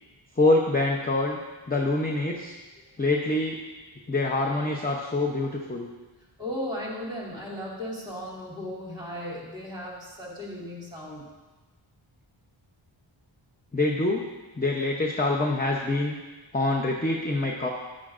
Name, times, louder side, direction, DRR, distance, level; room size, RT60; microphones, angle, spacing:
voice 1, 0.4-1.4 1.7-2.6 3.0-3.6 4.1-5.9 13.7-14.3 14.6-16.2 16.5-17.7, left 2 dB, 20° left, -1 dB, 0.8 m, -25 dB
voice 2, 6.4-11.2, left 1 dB, 10° right, -4 dB, 2.8 m, -36 dB
10.0 x 10.0 x 2.5 m, 1.2 s
wide cardioid pair, 55°, 50 cm